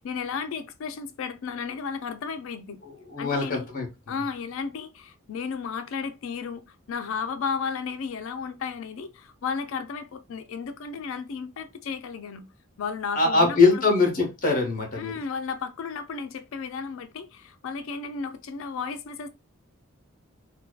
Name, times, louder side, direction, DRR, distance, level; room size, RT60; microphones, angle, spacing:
voice 1, 0.0-2.8 3.2-3.7 4.1-12.5 12.8-13.9 15.0-19.3, left 5 dB, 65° left, 0.3 m, -33 dB
voice 2, 3.1-3.8 13.1-15.1, left 3 dB, 40° left, 0.8 m, -22 dB
2.6 x 2.2 x 2.3 m
head